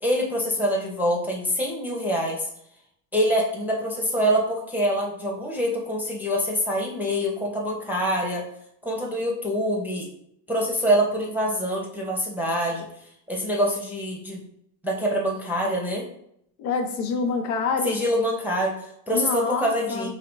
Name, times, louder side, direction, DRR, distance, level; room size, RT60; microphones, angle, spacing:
voice 1, 0.0-2.4 3.1-8.4 8.8-10.1 10.5-12.9 13.3-14.4 14.8-16.0 17.8-20.1, equal, 5° right, -3 dB, 0.7 m, -25 dB
voice 2, 16.6-18.0 19.1-20.1, left 4 dB, 70° left, 5 dB, 0.9 m, -26 dB
4.0 x 2.8 x 3.1 m, 0.72 s
hypercardioid pair, 90°, 50 cm